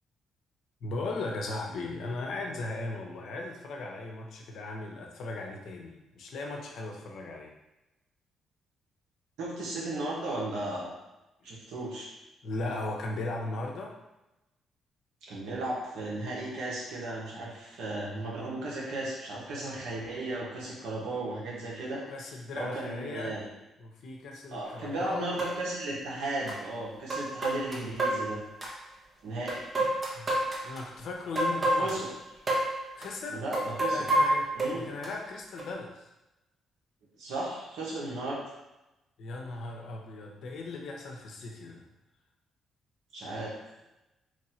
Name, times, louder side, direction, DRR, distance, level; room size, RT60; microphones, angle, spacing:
voice 1, 0.8-7.5 11.4-11.5 12.4-14.0 21.7-23.4 23.8-25.4 30.2-30.3 30.6-32.0 32.9-33.4 33.9-34.5 34.7-36.0 39.2-41.8, left 2 dB, 70° left, 1 dB, 0.7 m, -37 dB
voice 2, 9.4-10.9 11.4-12.1 15.2-22.0 22.5-23.4 24.5-28.4 29.2-29.6 31.8-32.1 33.3-34.0 34.5-34.9 37.2-38.4 43.1-43.6, right 2 dB, 80° right, -5 dB, 1.3 m, -35 dB
sound 1, 24.7-24.8 25.4-25.5 26.5-26.6 27.1-28.7 29.5-30.8 31.3-32.1 32.5-32.7 33.0-33.1 33.5-35.1 35.6-35.7, right 1 dB, 35° right, 1.0 m, -28 dB
3.2 x 2.6 x 4.3 m, 0.97 s
supercardioid pair, 70°, 0 cm